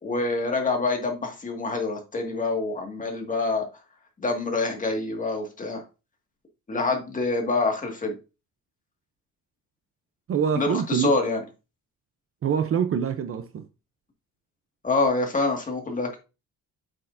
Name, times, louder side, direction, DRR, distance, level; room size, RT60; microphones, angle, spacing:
voice 1, 0.0-3.6 4.2-5.8 6.7-8.1 10.6-11.4 14.8-16.2, left 3 dB, 20° left, 1.9 m, -26 dB
voice 2, 10.3-11.1 12.4-13.6, right 7 dB, 40° right, 0.6 m, -25 dB
8.5 x 6.3 x 2.6 m
cardioid pair, 155°, 36 cm